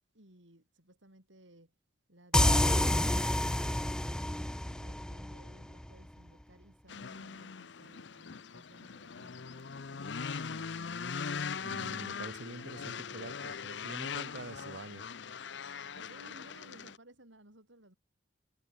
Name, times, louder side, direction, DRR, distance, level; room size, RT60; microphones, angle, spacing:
voice 1, 0.1-1.7 4.7-10.8 15.9-18.0, right 1 dB, 85° right, 7.6 m, -59 dB
sound 1, 2.3-5.9, left 1 dB, 5° left, 0.4 m, -29 dB
sound 2, 6.9-17.0, left 6 dB, 70° left, 0.7 m, -40 dB
voice 2, 11.6-15.0, right 2 dB, 65° right, 1.6 m, -46 dB
head